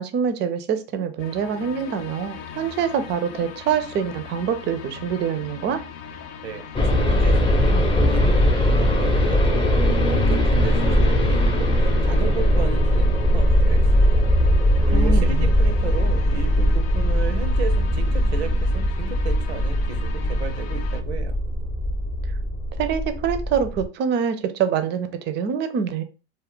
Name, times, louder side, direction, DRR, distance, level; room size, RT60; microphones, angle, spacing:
voice 1, 0.0-5.8 14.8-15.5 22.8-26.0, right 7 dB, 35° right, 9 dB, 0.5 m, -25 dB
sound 1, 1.2-21.0, left 6 dB, 65° left, 0.5 m, -39 dB
voice 2, 6.4-11.7 12.0-14.3 14.9-21.3, right 7 dB, 90° right, 7 dB, 0.7 m, -34 dB
sound 2, 6.7-23.8, equal, 15° left, 0.6 m, -20 dB
2.4 x 2.1 x 3.5 m, 0.33 s
hypercardioid pair, 100°, 32 cm